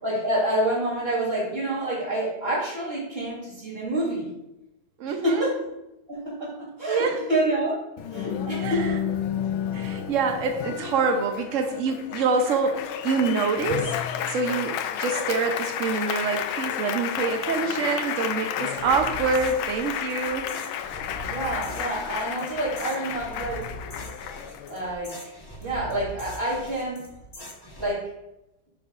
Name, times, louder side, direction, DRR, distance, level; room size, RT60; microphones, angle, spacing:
voice 1, 0.0-4.3 5.0-5.6 6.1-7.8 8.1-8.9 21.3-23.7 24.7-25.3 25.6-27.0 27.8-28.0, right 1 dB, 30° right, -5 dB, 3.4 m, -28 dB
voice 2, 5.0-5.5 6.9-7.2 8.6-8.9 9.7-14.0 14.3-20.5, right 4 dB, 70° right, 4 dB, 0.7 m, -26 dB
Applause, 8.0-24.9, left 9 dB, 85° left, 1.4 m, -31 dB
sound 1, 18.8-27.9, equal, 25° left, 0.5 m, -42 dB
10.0 x 6.9 x 2.5 m, 0.93 s
omnidirectional pair, 2.2 m